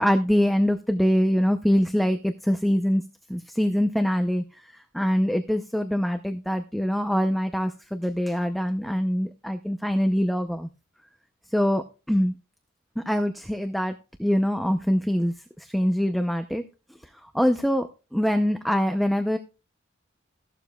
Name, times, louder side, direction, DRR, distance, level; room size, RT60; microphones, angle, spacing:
voice 1, 0.0-3.0 3.3-4.4 4.9-10.7 11.5-12.3 13.0-16.6 17.3-19.4, equal, ahead, 7 dB, 0.5 m, -24 dB
15.5 x 12.0 x 2.3 m, 0.31 s
head